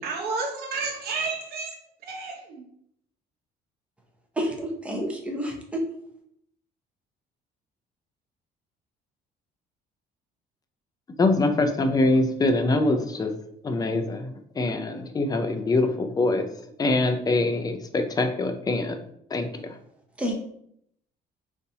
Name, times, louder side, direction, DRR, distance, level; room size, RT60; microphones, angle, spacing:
voice 1, 0.0-2.7, right 4 dB, 70° right, 0 dB, 1.0 m, -31 dB
voice 2, 4.4-5.8 20.2-20.3, equal, 5° right, 0 dB, 0.7 m, -29 dB
voice 3, 11.2-13.3 13.6-16.5 16.8-19.0 19.3-19.8, left 2 dB, 20° left, 6 dB, 0.4 m, -24 dB
3.8 x 2.6 x 2.8 m, 0.71 s
cardioid pair, 110°, 17 cm